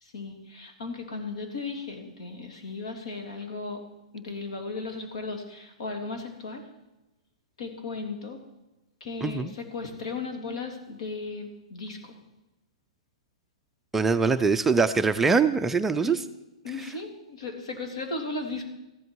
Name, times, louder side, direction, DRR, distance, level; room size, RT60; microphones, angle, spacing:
voice 1, 0.0-3.8 4.1-6.6 7.6-8.4 9.0-12.1 16.0-16.2 16.6-18.6, left 3 dB, 75° left, 5 dB, 2.9 m, -36 dB
voice 2, 9.2-9.5 13.9-16.2 16.8-16.9, right 4 dB, 5° right, 8 dB, 0.3 m, -23 dB
14.0 x 11.0 x 4.6 m, 1.0 s
hypercardioid pair, 155°, 3 cm